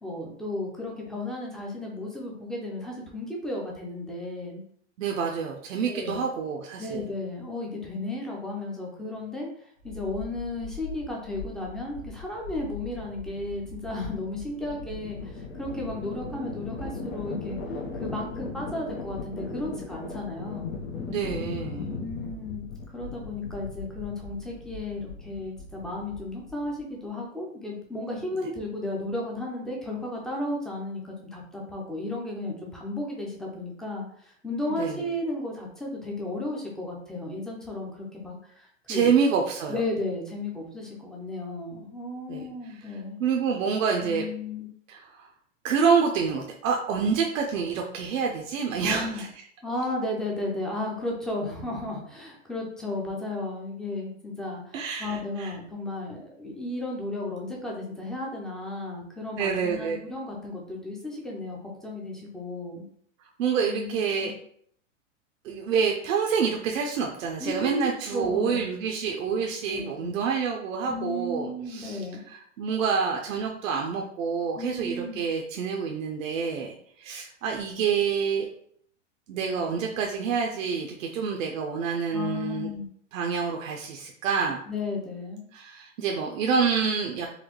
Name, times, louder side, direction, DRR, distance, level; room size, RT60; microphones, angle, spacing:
voice 1, 0.0-4.6 5.9-6.2 6.8-17.6 17.9-20.8 21.8-39.1 39.7-43.2 44.0-44.7 48.8-49.2 49.6-62.8 63.7-64.3 67.4-67.8 68.1-68.6 69.7-70.2 70.9-72.2 74.6-75.2 82.1-82.9 84.7-85.5, left 2 dB, ahead, -2 dB, 0.4 m, -34 dB
voice 2, 5.0-7.0 21.1-22.0 34.8-35.0 38.9-39.8 42.3-42.4 42.8-44.2 44.9-45.3 45.6-49.3 54.7-55.5 59.4-60.0 63.2-64.3 65.4-78.5 79.3-82.7 83.1-84.6 85.5-87.3, right 6 dB, 80° right, 1 dB, 0.6 m, -27 dB
sound 1, 9.8-26.8, left 4 dB, 85° left, 1.0 m, -38 dB
4.0 x 2.2 x 3.0 m, 0.64 s
hypercardioid pair, 125°, 39 cm